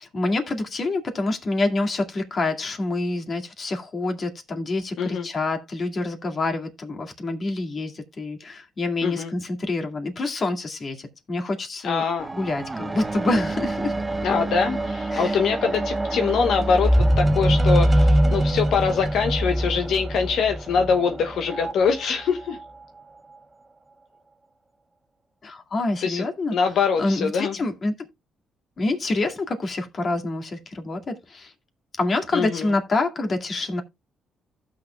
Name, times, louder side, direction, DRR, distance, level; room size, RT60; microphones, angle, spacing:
voice 1, 0.1-12.0 12.3-13.9 15.1-15.4 25.4-26.6 27.0-28.1 28.8-31.5 32.0-33.8, left 2 dB, 45° left, 2.1 m, -27 dB
voice 2, 11.8-12.3 14.2-22.6 26.0-26.2 26.5-27.5 32.3-32.7, left 6 dB, 75° left, 0.9 m, -23 dB
sound 1, 12.2-21.7 22.5-22.6, right 1 dB, 20° right, 0.9 m, -23 dB
15.0 x 6.6 x 2.3 m
cardioid pair, 90°, 0 cm